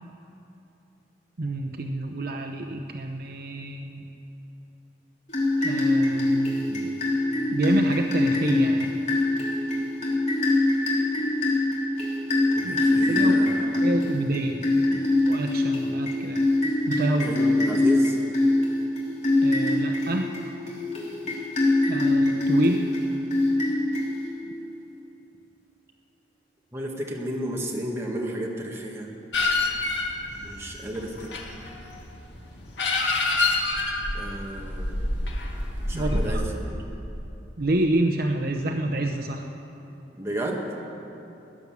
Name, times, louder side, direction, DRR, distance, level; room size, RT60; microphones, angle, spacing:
voice 1, 1.4-4.1 5.6-7.0 7.5-9.0 12.6-12.8 13.1-13.4 13.8-14.6 14.9-16.4 16.9-17.4 19.4-20.3 21.9-22.9 35.9-36.4 37.6-39.5, right 1 dB, 55° right, 4 dB, 0.8 m, -28 dB
sound 1, 5.3-24.5, left 2 dB, 40° left, 3.3 m, -24 dB
voice 2, 12.6-13.8 17.2-18.2 26.7-29.1 30.4-31.5 34.1-35.0 35.9-36.7 40.2-40.6, right 1 dB, 15° right, -1 dB, 1.8 m, -32 dB
sound 2, 29.3-36.3, left 2 dB, 70° left, 1.9 m, -27 dB
17.0 x 10.5 x 7.3 m, 2.9 s
head